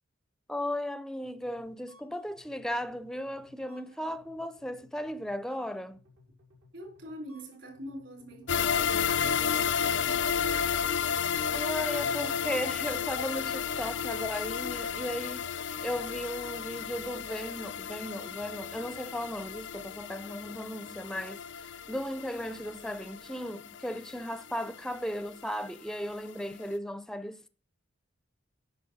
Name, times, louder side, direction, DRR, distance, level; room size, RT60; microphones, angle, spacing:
voice 1, 0.5-6.0 11.5-27.5, equal, 5° left, 0.5 m, -36 dB
sound 1, 1.2-8.9, left 1 dB, 85° right, 5.1 m, -61 dB
voice 2, 6.7-10.3, equal, 60° right, 4.0 m, -45 dB
sound 2, 8.5-25.6 25.9-26.0 26.4-26.5, left 7 dB, 60° left, 0.5 m, -32 dB
Keyboard (musical), 8.9-11.0, right 2 dB, 45° right, 0.8 m, -52 dB
9.5 x 6.2 x 6.1 m
head